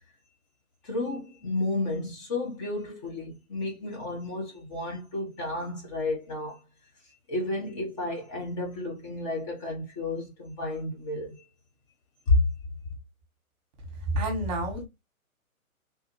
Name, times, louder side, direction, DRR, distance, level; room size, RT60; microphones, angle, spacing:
voice 1, 0.8-6.6 7.3-11.4 12.3-12.4, left 2 dB, 25° left, 0.9 m, -31 dB
voice 2, 14.1-14.8, right 1 dB, 30° right, 1.2 m, -28 dB
3.4 x 2.4 x 2.9 m
figure-of-eight pair, 125°, 43 cm